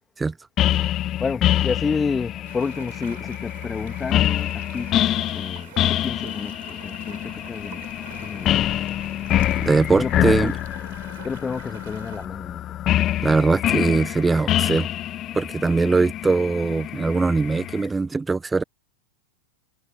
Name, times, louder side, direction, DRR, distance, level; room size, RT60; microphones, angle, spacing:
sound 1, 0.6-17.8, left 12 dB, 30° left, 0.7 m, -26 dB
voice 1, 1.2-4.9 5.3-7.8 8.2-8.8 10.0-10.5 11.2-12.6 15.6-16.0, left 5 dB, 15° left, 1.5 m, -30 dB
sound 2, 2.4-12.3, right 16 dB, 55° right, 4.2 m, -46 dB
voice 2, 9.6-10.5 13.2-14.9 15.3-18.6, right 3 dB, 10° right, 0.6 m, -21 dB
figure-of-eight pair, 90°, 0 cm